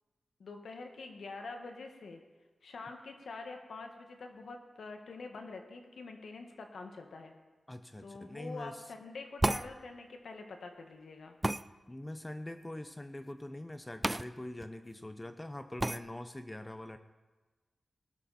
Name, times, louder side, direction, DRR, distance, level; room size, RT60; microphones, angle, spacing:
voice 1, 0.4-2.2 2.6-7.3 8.0-11.4, left 3 dB, 85° left, 4 dB, 1.8 m, -46 dB
voice 2, 7.7-8.9 11.9-17.0, left 1 dB, 15° left, 9 dB, 0.7 m, -43 dB
sound 1, 9.4-9.7 11.4-11.6 14.0-14.3 14.6-14.7 15.8-16.0, right 1 dB, 15° right, 0.3 m, -30 dB
19.0 x 12.5 x 4.3 m, 1.2 s
wide cardioid pair, 95°, 0 cm